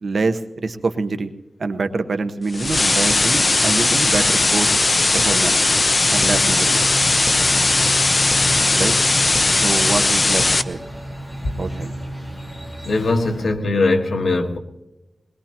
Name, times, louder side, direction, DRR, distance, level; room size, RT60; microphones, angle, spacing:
voice 1, 0.0-1.3 1.6-4.7 5.1-5.6 6.1-6.8 8.7-8.9 9.6-10.8 11.5-11.9, right 3 dB, 70° right, 7 dB, 1.0 m, -25 dB
sound 1, 2.5-10.6, left 2 dB, 40° left, 0.6 m, -18 dB
sound 2, 6.0-13.5, equal, 5° left, 4.1 m, -32 dB
voice 2, 12.8-14.6, left 2 dB, 75° left, 3 dB, 1.5 m, -20 dB
22.0 x 20.5 x 2.9 m, 0.96 s
wide cardioid pair, 100°, 0 cm